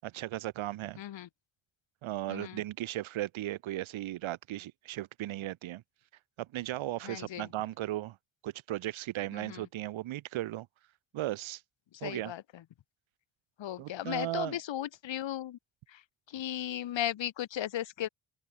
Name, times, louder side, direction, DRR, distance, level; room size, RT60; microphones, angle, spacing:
voice 1, 0.0-1.0 2.0-5.8 6.4-8.2 8.4-10.7 11.1-11.6 12.0-12.3 13.8-14.6, right 15 dB, 90° right, 7.7 m, -36 dB
voice 2, 1.0-1.3 2.3-2.6 7.0-7.5 9.3-9.7 12.0-12.4 13.6-15.6 15.9-16.0 16.3-18.1, left 12 dB, 70° left, 7.2 m, -36 dB
open air
cardioid pair, 120°, 46 cm